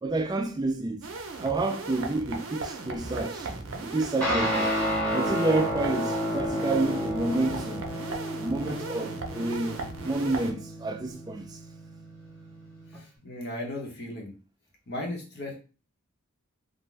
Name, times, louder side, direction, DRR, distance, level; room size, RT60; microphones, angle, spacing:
voice 1, 0.0-1.1 1.4-4.7 5.1-7.9 8.4-11.6, right 2 dB, 20° right, 0.3 m, -29 dB
sound 1, 1.0-10.5, right 3 dB, 80° right, 0.6 m, -38 dB
Guitar, 4.2-13.0, equal, 5° left, 1.1 m, -31 dB
voice 2, 12.9-14.3 14.9-15.6, left 1 dB, 50° left, 0.9 m, -36 dB
2.5 x 2.1 x 3.2 m
head